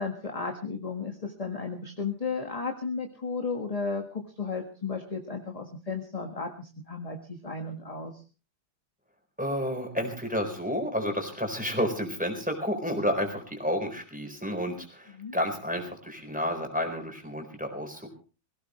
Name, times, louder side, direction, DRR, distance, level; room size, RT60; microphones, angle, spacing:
voice 1, 0.0-8.1 15.1-15.3, left 4 dB, 20° left, 3 dB, 1.6 m, -34 dB
voice 2, 9.4-18.1, equal, 5° right, 4 dB, 4.2 m, -31 dB
22.0 x 16.5 x 3.2 m, 0.35 s
omnidirectional pair, 2.1 m